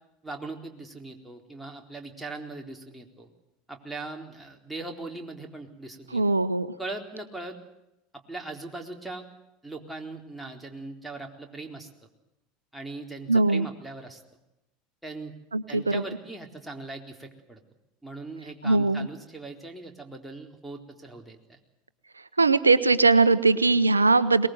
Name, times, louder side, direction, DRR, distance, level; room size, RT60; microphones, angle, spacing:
voice 1, 0.2-3.3 3.7-6.2 6.8-7.6 8.1-9.3 9.6-11.9 12.7-14.2 15.0-15.3 15.7-17.6 18.0-21.6, right 2 dB, 5° right, 1 dB, 4.0 m, -40 dB
voice 2, 6.1-6.7 13.3-13.7 15.5-16.0 18.6-19.1 22.4-24.5, right 3 dB, 90° right, 14 dB, 0.9 m, -20 dB
23.0 x 20.5 x 8.0 m, 0.91 s
figure-of-eight pair, 80°, 0 cm